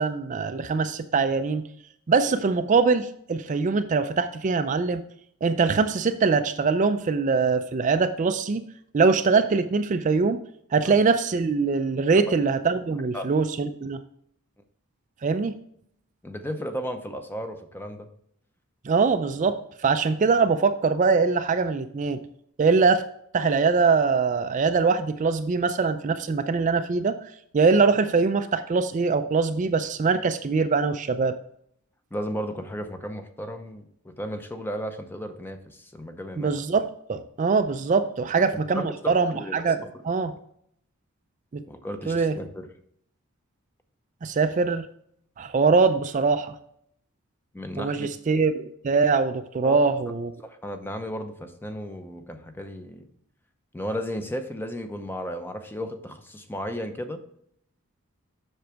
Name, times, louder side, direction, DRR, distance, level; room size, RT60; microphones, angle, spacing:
voice 1, 0.0-1.6 2.1-5.0 5.4-8.6 8.9-10.4 10.7-14.0 15.2-15.5 18.8-22.2 22.6-23.0 23.3-31.4 36.4-39.8 40.0-40.3 41.5-41.6 42.1-42.4 44.2-44.9 45.4-46.6 47.8-50.3, right 4 dB, 35° right, 9 dB, 0.4 m, -23 dB
voice 2, 16.2-18.1 32.1-36.5 38.8-39.9 41.7-42.7 47.5-48.1 49.6-49.9 50.4-53.1 53.7-57.2, equal, 10° left, 7 dB, 0.6 m, -34 dB
7.7 x 6.0 x 3.4 m, 0.68 s
head